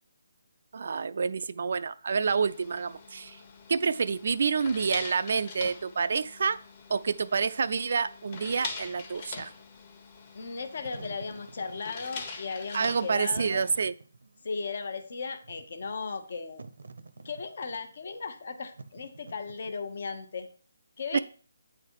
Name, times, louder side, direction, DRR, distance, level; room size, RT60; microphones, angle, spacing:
voice 1, 0.7-3.4 3.7-6.6 6.9-9.5 12.7-13.9 21.1-21.2, right 5 dB, 55° right, 13 dB, 0.3 m, -28 dB
sound 1, 2.4-13.9, left 4 dB, 30° left, 1.1 m, -44 dB
voice 2, 10.3-13.7 14.4-16.6 17.2-20.5 21.0-21.2, left 4 dB, 50° left, 8 dB, 0.9 m, -36 dB
Wind / Fire, 10.6-20.1, right 3 dB, 75° right, 0.7 m, -49 dB
8.9 x 3.9 x 4.7 m, 0.42 s
hypercardioid pair, 170°, 0 cm